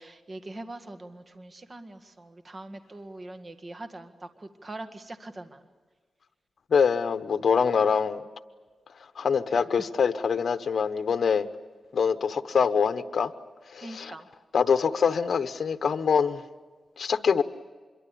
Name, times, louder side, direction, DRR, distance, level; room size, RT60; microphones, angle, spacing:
voice 1, 0.0-5.6 9.5-9.6 10.0-10.1 13.8-14.3, right 2 dB, 35° right, 7 dB, 1.9 m, -42 dB
voice 2, 6.7-8.2 9.2-11.5 11.9-13.3 13.7-14.1 14.5-16.4 17.0-17.4, left 6 dB, 70° left, 10 dB, 1.0 m, -24 dB
26.0 x 23.0 x 8.5 m, 1.4 s
cardioid pair, 80°, 0 cm